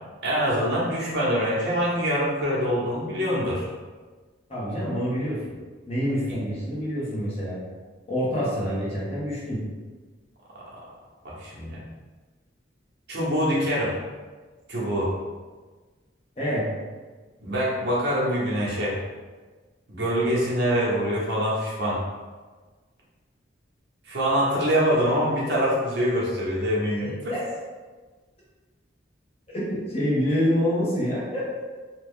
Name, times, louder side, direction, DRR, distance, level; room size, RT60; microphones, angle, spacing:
voice 1, 0.2-3.7 11.2-11.8 13.1-13.9 14.7-15.1 17.4-19.0 19.9-22.0 24.0-27.1, equal, 60° right, -6 dB, 0.9 m, -24 dB
voice 2, 4.5-5.4 5.9-7.6 8.1-9.6 16.4-16.7 27.0-27.4 29.7-31.4, equal, 30° left, -7 dB, 1.0 m, -26 dB
2.9 x 2.3 x 3.5 m, 1.4 s
head